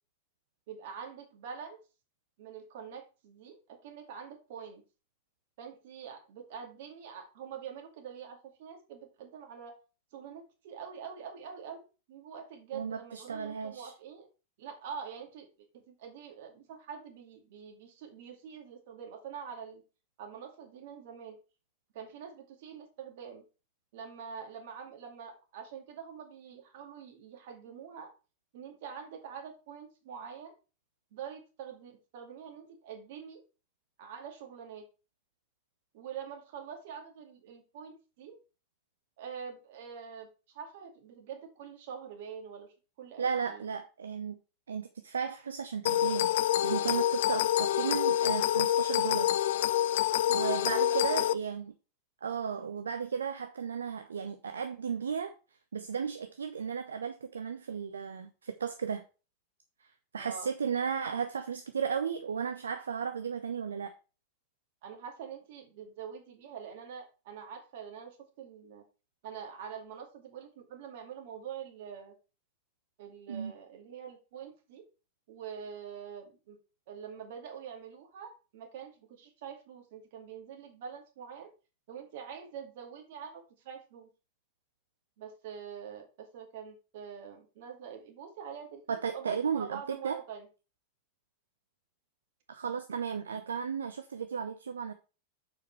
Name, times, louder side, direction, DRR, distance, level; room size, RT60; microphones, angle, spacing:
voice 1, 0.7-1.8 2.4-4.8 5.6-9.7 10.1-14.3 14.6-15.5 15.7-19.8 20.2-21.4 21.9-23.4 23.9-28.1 28.5-30.5 31.1-33.4 34.0-34.8 35.9-38.4 39.2-42.7 43.0-43.7 50.7-51.3 60.2-60.5 64.8-68.8 69.2-72.1 73.0-74.8 75.3-76.6 76.9-81.5 81.9-84.1 85.2-90.5, right 7 dB, 50° right, 2.1 m, -45 dB
voice 2, 12.7-13.9 43.2-44.4 44.7-46.3 46.6-49.3 50.3-51.7 52.2-55.3 55.7-59.0 59.8-63.9 73.3-73.5 88.9-90.2 92.5-94.9, right 6 dB, 70° right, 0.6 m, -35 dB
sound 1, 45.9-51.3, left 12 dB, 55° left, 0.3 m, -27 dB
6.9 x 5.1 x 4.5 m
figure-of-eight pair, 90°, 0 cm